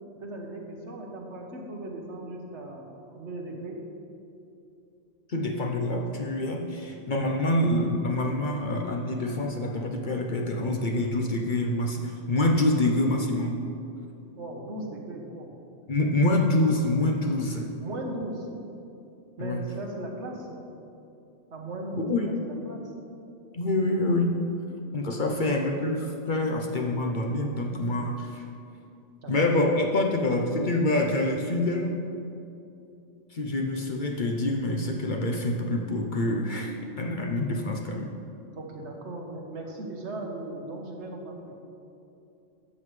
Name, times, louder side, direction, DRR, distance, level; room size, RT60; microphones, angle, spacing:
voice 1, 0.2-2.8 3.1-3.8 14.4-15.5 16.2-16.3 17.8-18.5 19.4-20.6 21.5-22.8 25.2-25.4 29.2-29.6 38.5-41.6, right 2 dB, 70° right, 1 dB, 1.4 m, -37 dB
voice 2, 5.3-13.6 15.9-17.7 19.4-19.6 21.9-22.3 23.5-24.4 24.9-28.5 29.3-31.9 33.3-38.1, left 1 dB, 50° left, 1 dB, 0.8 m, -26 dB
12.0 x 7.6 x 3.2 m, 2.7 s
omnidirectional pair, 1.2 m